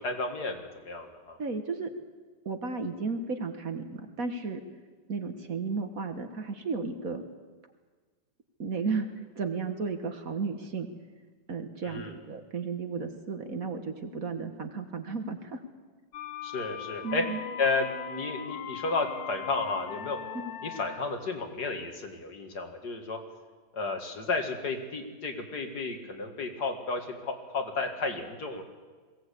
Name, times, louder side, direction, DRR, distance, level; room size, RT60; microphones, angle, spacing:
voice 1, 0.0-1.4 11.8-12.1 16.4-17.3 17.6-20.2 20.6-23.2 23.7-28.6, left 3 dB, 65° left, 4 dB, 2.7 m, -32 dB
voice 2, 1.4-1.9 2.5-4.6 5.1-7.2 8.6-9.1 9.4-10.9 11.5-15.6 17.0-17.4 20.3-20.5, right 4 dB, 55° right, 6 dB, 1.9 m, -34 dB
sound 1, 16.1-21.2, left 9 dB, 90° left, 1.5 m, -40 dB
21.0 x 17.0 x 8.5 m, 1.4 s
omnidirectional pair, 1.9 m